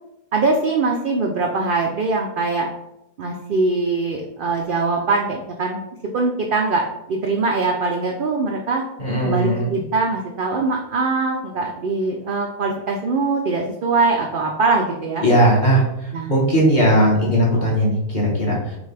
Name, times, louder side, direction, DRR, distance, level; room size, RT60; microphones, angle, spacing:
voice 1, 0.3-2.7 3.2-5.8 6.1-8.8 9.2-15.2 16.1-16.3, right 3 dB, 70° right, 1 dB, 0.5 m, -22 dB
voice 2, 9.0-9.7 15.2-15.8 16.3-18.8, equal, 35° left, -4 dB, 1.2 m, -17 dB
6.0 x 2.4 x 3.3 m, 0.84 s
omnidirectional pair, 1.5 m